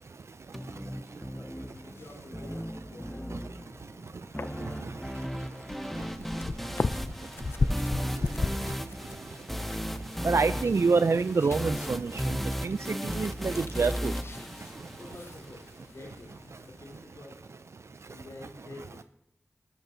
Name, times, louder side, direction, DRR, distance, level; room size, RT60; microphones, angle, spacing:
sound 1, 0.5-15.5, equal, 5° left, 0.8 m, -36 dB
voice 1, 1.3-3.4 15.0-15.6 15.9-16.3 16.6-17.6 18.0-19.0, left 2 dB, 80° left, -2 dB, 3.7 m, -48 dB
sound 2, 1.6-17.0, left 3 dB, 55° left, 0.4 m, -38 dB
voice 2, 10.2-12.1 12.6-12.8 13.0-14.1, right 4 dB, 70° right, 12 dB, 0.3 m, -26 dB
12.5 x 12.5 x 2.7 m, 0.83 s
wide cardioid pair, 50°, 5 cm